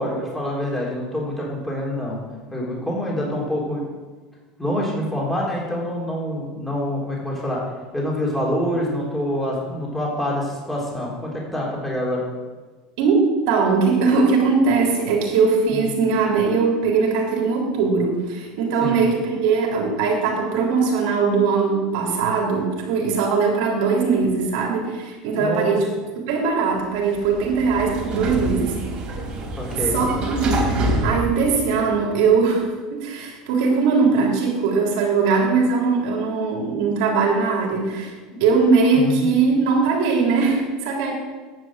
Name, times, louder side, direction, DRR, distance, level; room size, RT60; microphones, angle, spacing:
voice 1, 0.0-2.2 2.5-3.8 4.6-7.6 7.9-12.2 15.7-15.8 18.8-19.0 25.4-25.8 29.6-30.0 38.3-38.4 38.9-39.3, left 1 dB, 5° left, -4 dB, 3.6 m, -26 dB
voice 2, 13.0-25.9 26.2-28.8 29.9-38.1 38.4-41.1, right 4 dB, 75° right, -1 dB, 3.5 m, -20 dB
Sliding door, 27.0-32.2, right 1 dB, 35° right, 3.3 m, -27 dB
10.0 x 6.3 x 7.6 m, 1.3 s
supercardioid pair, 115°, 3 cm